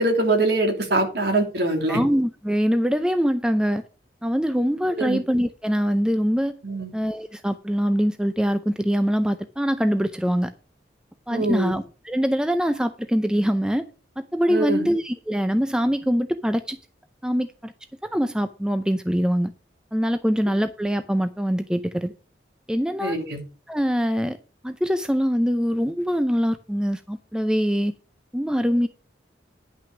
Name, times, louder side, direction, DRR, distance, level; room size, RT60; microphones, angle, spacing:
voice 1, 0.0-2.0 4.9-5.2 6.6-6.9 11.3-11.7 14.5-14.9 23.0-23.4, right 2 dB, 60° right, 3.0 m, -23 dB
voice 2, 1.9-3.8 4.2-6.6 6.9-10.5 11.3-13.8 14.2-16.8 17.2-17.7 18.0-19.5 19.9-22.1 22.7-23.2 23.7-24.4 24.6-27.9 28.3-28.9, equal, 5° right, 0.5 m, -23 dB
10.5 x 5.9 x 6.0 m
head